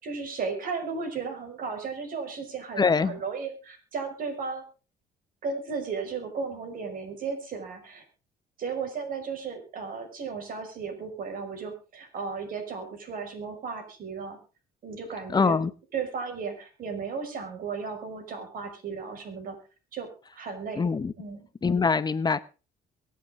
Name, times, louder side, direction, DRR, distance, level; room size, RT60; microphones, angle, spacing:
voice 1, 0.0-4.6 5.4-8.0 8.6-14.4 14.8-15.6 15.9-19.6 19.9-20.1 20.4-20.8 21.2-21.5, right 5 dB, 55° right, 5.7 m, -35 dB
voice 2, 2.8-3.2 15.3-15.7 20.8-21.1 21.6-22.4, left 5 dB, 25° left, 0.9 m, -23 dB
23.5 x 8.6 x 3.7 m
cardioid pair, 110°, 17 cm